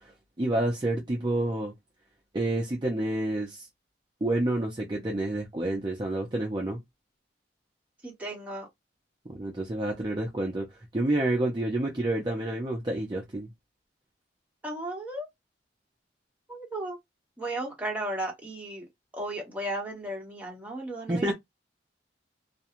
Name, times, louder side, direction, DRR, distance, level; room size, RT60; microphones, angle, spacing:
voice 1, 0.4-1.7 2.3-3.7 4.2-6.8 9.3-10.7 10.9-13.5 21.1-21.3, right 1 dB, 25° right, 0.5 m, -28 dB
voice 2, 8.0-8.7 14.6-15.3 16.5-17.0 17.4-18.9 19.1-21.3, right 1 dB, 10° right, 1.0 m, -35 dB
2.4 x 2.3 x 2.8 m
head